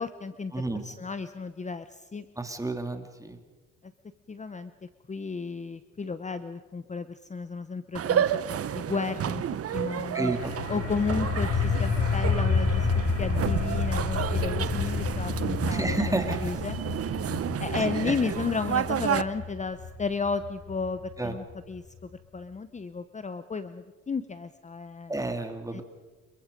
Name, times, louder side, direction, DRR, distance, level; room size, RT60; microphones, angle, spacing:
voice 1, 0.0-2.3 4.3-8.2 8.5-9.4 9.7-10.3 10.7-12.9 13.2-16.8 17.1-17.2 17.6-25.1 25.7-25.8, left 4 dB, 25° left, 12 dB, 0.9 m, -33 dB
voice 2, 2.4-3.4 10.1-10.5 15.7-16.5 18.1-18.2 21.2-21.3 25.1-25.8, right 2 dB, 10° right, 6 dB, 2.7 m, -30 dB
sound 1, 7.9-19.2, right 9 dB, 50° right, 0.9 m, -31 dB
sound 2, 10.3-21.8, left 5 dB, 65° left, 6.9 m, -29 dB
28.5 x 23.0 x 5.3 m, 1.3 s
cardioid pair, 90°, 30 cm